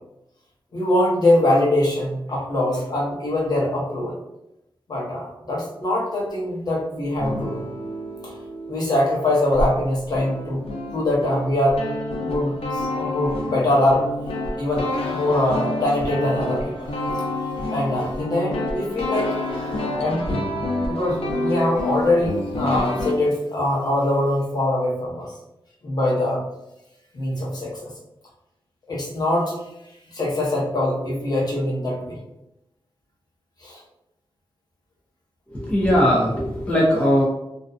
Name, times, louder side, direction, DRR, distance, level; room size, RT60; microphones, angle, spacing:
voice 1, 0.7-4.1 4.9-7.6 8.2-8.3 8.7-11.8 12.2-14.1 14.6-16.9 17.2-17.3 17.7-19.4 19.9-20.5 20.9-25.3 25.8-26.4 27.1-27.9 28.9-29.5 30.1-32.2 33.6-33.8 36.1-36.2, left 1 dB, 45° left, -4 dB, 0.8 m, -23 dB
sound 1, 7.2-9.7 10.0-23.1, left 1 dB, 85° left, 0.5 m, -28 dB
voice 2, 35.5-37.2, equal, 15° left, -6 dB, 0.4 m, -19 dB
2.5 x 2.1 x 2.3 m, 0.88 s
wide cardioid pair, 160°, 10 cm